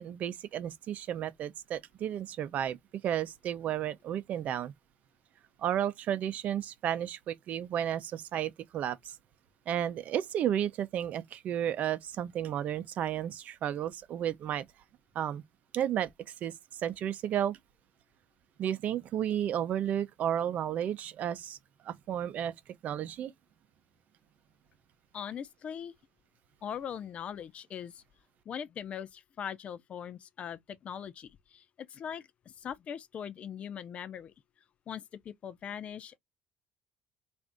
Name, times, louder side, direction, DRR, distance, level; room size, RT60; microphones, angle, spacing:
voice 1, 0.0-2.8 3.0-4.7 5.6-9.2 9.7-14.7 15.1-15.4 15.7-16.1 16.4-16.5 16.8-17.6 18.6-21.6 21.8-22.5 22.8-23.3, right 10 dB, 55° right, 0.6 m, -32 dB
voice 2, 25.1-25.9 26.6-28.0 28.5-34.3 34.9-36.2, left 8 dB, 45° left, 0.5 m, -41 dB
3.8 x 2.6 x 3.5 m
cardioid pair, 120°, 3 cm